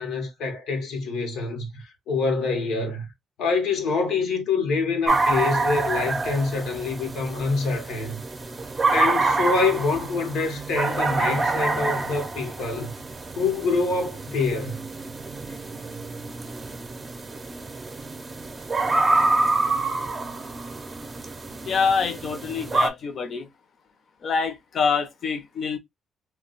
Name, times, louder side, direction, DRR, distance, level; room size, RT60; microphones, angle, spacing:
voice 1, 0.0-3.1 3.4-8.2 8.9-12.9 13.4-14.8, left 4 dB, 85° left, 0.9 m, -26 dB
sound 1, 5.1-22.9, right 3 dB, 25° right, 0.6 m, -27 dB
voice 2, 21.7-23.4 24.2-25.8, left 5 dB, 55° left, 0.7 m, -25 dB
2.3 x 2.2 x 3.9 m
cardioid pair, 90°, 0 cm